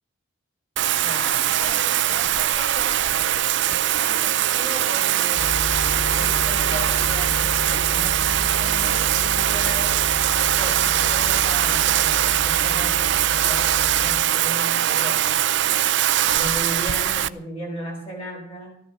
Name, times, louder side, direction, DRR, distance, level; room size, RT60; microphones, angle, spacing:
Bathtub (filling or washing), 0.8-17.3, right 11 dB, 55° right, 0.5 m, -21 dB
voice 1, 1.0-5.4 6.1-10.0 10.6-15.4 16.3-18.8, equal, 30° left, -2 dB, 7.4 m, -36 dB
sound 1, 5.4-14.2, left 1 dB, 85° left, 2.2 m, -32 dB
16.0 x 12.5 x 5.7 m, 0.72 s
head